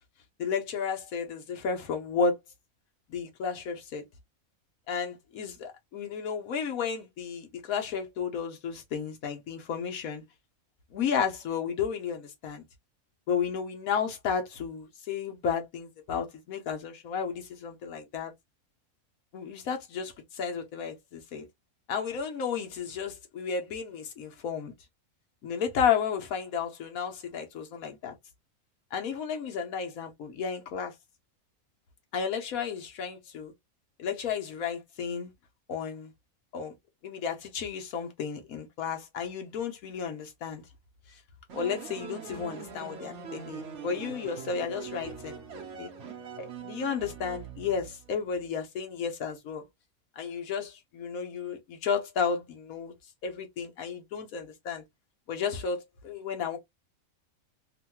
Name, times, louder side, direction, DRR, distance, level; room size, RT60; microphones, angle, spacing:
voice 1, 0.4-2.4 3.1-4.0 4.9-10.2 10.9-12.7 13.3-18.3 19.3-21.5 21.9-24.7 25.4-28.1 28.9-30.9 32.1-33.5 34.0-35.3 35.7-36.1 36.5-36.7 37.0-40.6 41.5-45.4 45.8-45.9 46.4-49.6 50.2-52.9 53.2-54.8 55.3-56.6, left 6 dB, 80° left, 1.3 m, -33 dB
sound 1, 41.5-48.1, right 6 dB, 60° right, 1.0 m, -42 dB
3.2 x 2.2 x 2.9 m
omnidirectional pair, 1.5 m